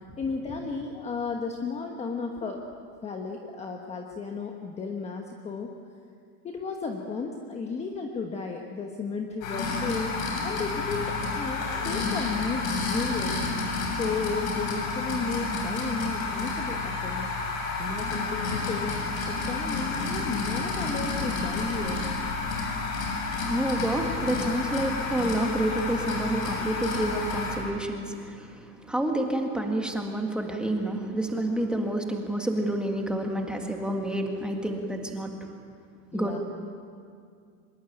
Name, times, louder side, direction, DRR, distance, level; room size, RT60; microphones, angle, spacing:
voice 1, 0.2-2.6 3.0-5.7 6.4-10.1 10.4-13.4 13.9-17.3 17.8-19.0 19.3-22.1 36.1-36.4, left 4 dB, 15° left, 2 dB, 1.2 m, -33 dB
sound 1, 9.4-27.6, left 3 dB, 70° left, 7.6 m, -30 dB
voice 2, 23.3-35.4 36.1-36.4, right 1 dB, ahead, 2 dB, 1.9 m, -29 dB
24.5 x 22.0 x 8.9 m, 2.3 s
supercardioid pair, 165°, 42 cm